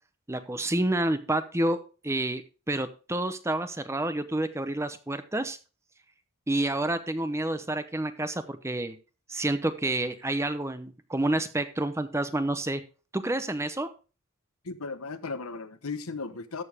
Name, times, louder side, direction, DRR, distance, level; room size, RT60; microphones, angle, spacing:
voice 1, 0.3-1.8 2.0-2.4 2.7-5.6 6.5-9.0 9.3-12.8 13.1-13.9, right 1 dB, 10° right, 10 dB, 0.8 m, -29 dB
voice 2, 14.6-16.6, left 4 dB, 80° left, 11 dB, 1.1 m, -36 dB
13.5 x 7.0 x 3.5 m, 0.33 s
head